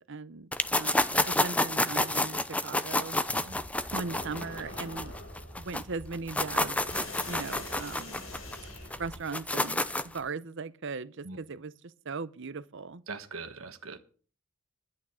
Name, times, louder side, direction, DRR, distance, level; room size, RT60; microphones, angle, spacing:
voice 1, 0.1-0.5 0.7-3.2 3.9-5.1 5.6-6.8 7.3-8.2 9.0-11.7 12.0-13.0, right 4 dB, 60° right, 0.8 m, -38 dB
sound 1, 0.5-5.8 6.1-10.2, left 1 dB, 5° left, 0.6 m, -29 dB
voice 2, 3.3-3.6 11.2-11.4 13.1-14.0, right 4 dB, 80° right, 1.4 m, -41 dB
sound 2, 3.5-9.2, left 1 dB, 70° left, 4.5 m, -44 dB
11.0 x 9.5 x 6.3 m
head